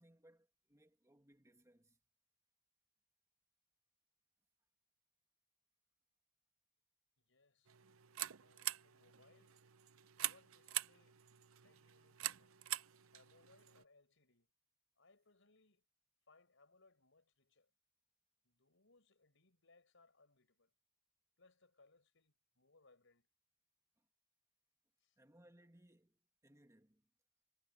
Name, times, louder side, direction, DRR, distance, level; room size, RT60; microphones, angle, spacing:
voice 1, 0.0-2.0 24.0-24.1 25.2-27.1, right 1 dB, 15° right, 2.2 m, -67 dB
voice 2, 7.2-7.7 8.4-9.6 10.2-11.2 11.6-12.6 13.1-14.5 15.0-15.9 16.3-17.7 18.4-20.7 21.4-23.3 25.0-25.2, left 3 dB, 65° left, 6.0 m, -71 dB
sound 1, 7.7-13.8, right 14 dB, 85° right, 0.7 m, -45 dB
head